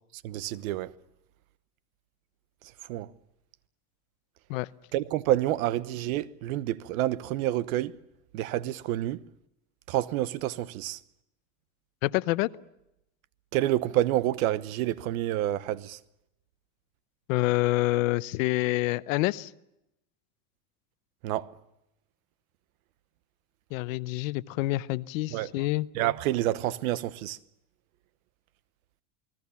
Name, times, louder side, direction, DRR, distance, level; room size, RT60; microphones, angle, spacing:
voice 1, 0.2-0.9 2.9-3.1 4.9-8.0 8.3-9.2 9.9-11.0 13.5-16.0 21.2-21.5 25.3-25.6 25.9-27.4, right 14 dB, 70° right, 1.1 m, -28 dB
voice 2, 12.0-12.5 17.3-19.5 23.7-25.9, left 19 dB, 65° left, 0.8 m, -27 dB
29.0 x 20.0 x 7.1 m
supercardioid pair, 170°, 43 cm